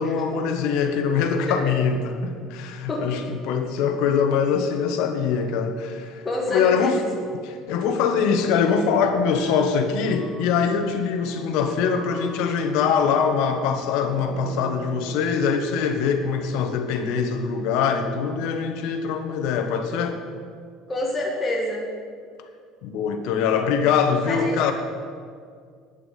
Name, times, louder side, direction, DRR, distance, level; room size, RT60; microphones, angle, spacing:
voice 1, 0.0-7.0 7.5-20.2 22.8-24.7, left 6 dB, 70° left, 6 dB, 1.4 m, -23 dB
voice 2, 6.2-7.1 20.9-21.9 24.3-24.7, left 1 dB, 15° left, -2 dB, 1.7 m, -27 dB
sound 1, 7.7-17.2, right 4 dB, 40° right, 0.9 m, -43 dB
9.7 x 8.9 x 8.4 m, 2.1 s
cardioid pair, 160°, 0 cm